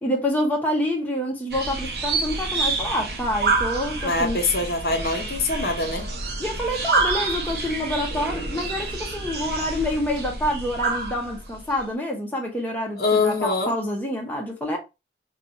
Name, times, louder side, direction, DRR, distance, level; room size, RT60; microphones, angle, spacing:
voice 1, 0.0-4.4 6.4-14.8, left 1 dB, 10° left, 0.7 m, -27 dB
sound 1, 1.5-11.8, right 3 dB, 60° right, 0.7 m, -28 dB
voice 2, 4.0-6.1 13.0-13.7, left 3 dB, 55° left, 0.7 m, -24 dB
2.5 x 2.3 x 4.0 m
head